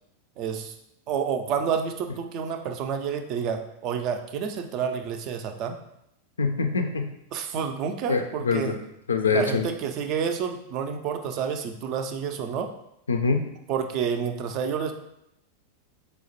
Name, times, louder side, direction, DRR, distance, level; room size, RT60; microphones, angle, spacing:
voice 1, 0.4-0.7 1.1-5.8 7.3-8.8 9.3-12.7 13.7-14.9, right 7 dB, 40° right, 6 dB, 0.3 m, -29 dB
voice 2, 6.4-7.1 8.1-8.8 9.1-9.7 13.1-13.4, left 4 dB, 75° left, 5 dB, 0.3 m, -24 dB
4.8 x 2.1 x 2.9 m, 0.79 s
figure-of-eight pair, 90°, 0 cm